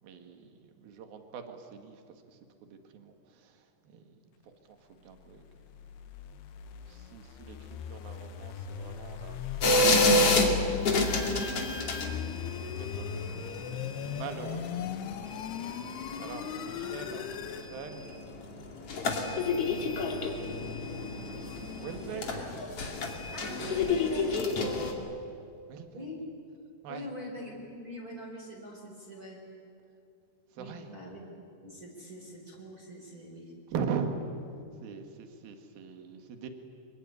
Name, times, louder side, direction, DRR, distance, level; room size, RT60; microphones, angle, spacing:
voice 1, 0.0-5.4 5.8-6.0 6.8-11.9 12.7-14.8 16.2-18.1 20.2-20.8 21.8-22.5 24.7-25.1 25.7-26.1 26.8-27.1 30.5-30.9 33.7-34.2 34.8-36.5, right 6 dB, 65° right, 6 dB, 3.6 m, -42 dB
sound 1, 5.5-17.7, left 8 dB, 80° left, 3.2 m, -38 dB
sound 2, 9.6-24.9, left 2 dB, 40° left, 3.1 m, -29 dB
voice 2, 22.1-22.5 23.3-24.5 25.9-26.2 26.9-29.4 30.6-31.2 31.6-33.5, equal, 20° right, -2 dB, 4.4 m, -43 dB
25.5 x 23.5 x 9.8 m, 2.5 s
omnidirectional pair, 4.7 m